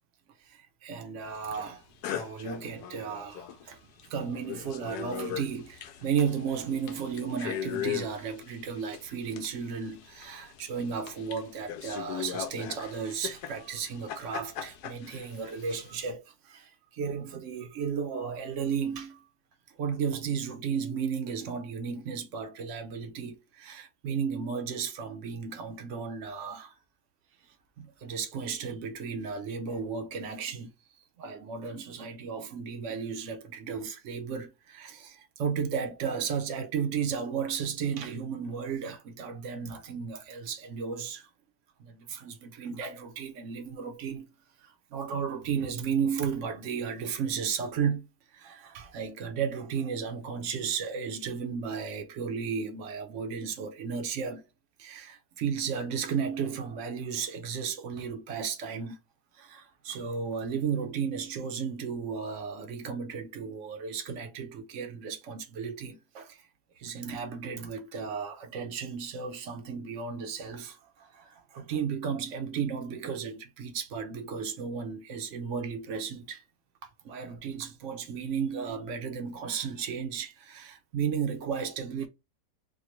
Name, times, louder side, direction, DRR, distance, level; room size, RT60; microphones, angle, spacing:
voice 1, 0.4-1.8 2.1-19.2 19.8-26.7 27.8-30.7 31.2-41.3 41.8-44.3 44.6-48.1 48.3-54.4 54.8-59.0 59.3-66.4 66.8-76.4 76.8-82.1, right 6 dB, 60° right, 0.9 m, -34 dB
sound 1, 1.5-1.7 2.0-3.7 4.0-4.1 4.3-16.1, left 10 dB, 75° left, 1.1 m, -39 dB
3.6 x 2.2 x 3.0 m
omnidirectional pair, 1.8 m